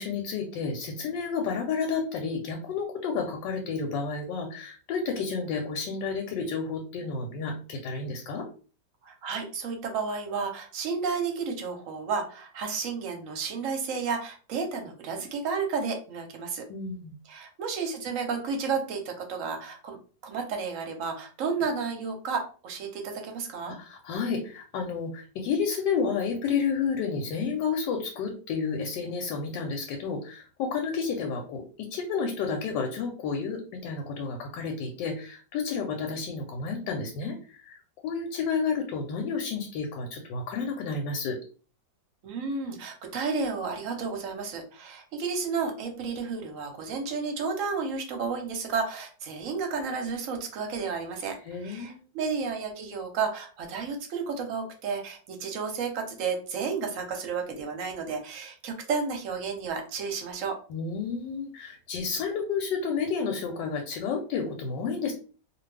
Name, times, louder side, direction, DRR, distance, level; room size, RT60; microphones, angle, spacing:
voice 1, 0.0-8.5 16.7-17.1 23.7-41.4 51.4-52.0 60.7-65.1, left 5 dB, 85° left, 3 dB, 1.2 m, -31 dB
voice 2, 9.0-16.6 17.3-20.0 20.2-23.8 42.2-51.4 51.6-60.6, right 5 dB, 65° right, 3 dB, 0.8 m, -32 dB
2.6 x 2.4 x 3.2 m, 0.38 s
omnidirectional pair, 1.9 m